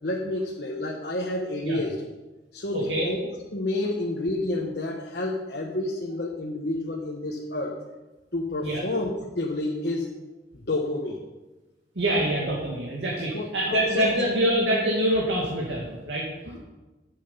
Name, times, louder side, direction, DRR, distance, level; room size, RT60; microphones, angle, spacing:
voice 1, 0.0-2.0 2.5-7.8 8.3-10.1 10.7-11.2 13.3-14.1, left 2 dB, 65° left, -1 dB, 1.1 m, -29 dB
voice 2, 2.7-3.1 8.6-8.8 12.0-16.6, right 1 dB, 85° right, -3 dB, 2.2 m, -25 dB
11.0 x 7.8 x 5.5 m, 1.1 s
head